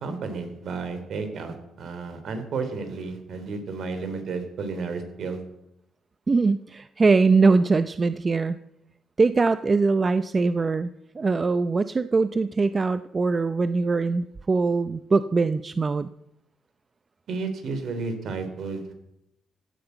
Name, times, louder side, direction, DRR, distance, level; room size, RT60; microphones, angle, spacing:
voice 1, 0.0-5.4 17.3-18.8, right 4 dB, 65° right, 8 dB, 3.4 m, -32 dB
voice 2, 6.3-8.6 9.2-16.1, right 4 dB, 30° right, 12 dB, 0.6 m, -22 dB
15.5 x 9.7 x 8.1 m, 0.82 s
cardioid pair, 90°, 0 cm